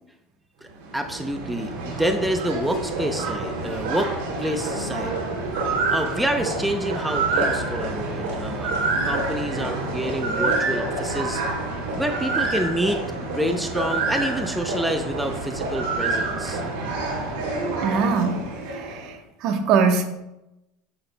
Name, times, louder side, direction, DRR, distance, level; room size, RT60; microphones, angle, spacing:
voice 1, 0.6-5.1 5.9-8.8 9.0-11.4 11.9-13.0 13.3-16.6, right 1 dB, 5° right, 6 dB, 0.7 m, -27 dB
sound 1, 0.7-19.1, right 3 dB, 85° right, 2.8 m, -27 dB
sound 2, 7.2-10.1, right 1 dB, 35° right, 1.0 m, -38 dB
voice 2, 17.8-20.1, right 5 dB, 60° right, 6 dB, 1.1 m, -23 dB
8.9 x 7.8 x 2.2 m, 0.92 s
supercardioid pair, 115°, 0 cm